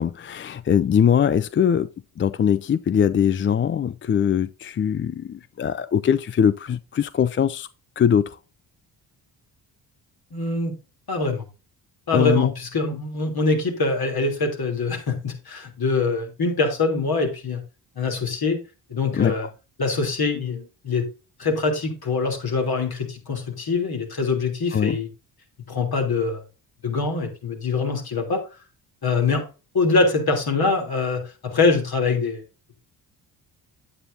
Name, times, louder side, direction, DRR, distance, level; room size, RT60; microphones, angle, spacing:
voice 1, 0.0-1.9 2.2-7.7 8.0-8.4 12.1-12.5 19.2-19.3 24.7-25.0, left 8 dB, 25° left, 0.4 m, -21 dB
voice 2, 10.3-10.7 11.1-11.4 12.1-17.6 18.0-18.6 18.9-19.5 19.8-21.1 21.4-25.1 25.7-26.4 26.8-28.4 29.0-29.4 29.7-32.4, left 3 dB, 50° left, 3.2 m, -24 dB
9.3 x 8.7 x 2.7 m
hypercardioid pair, 45°, 49 cm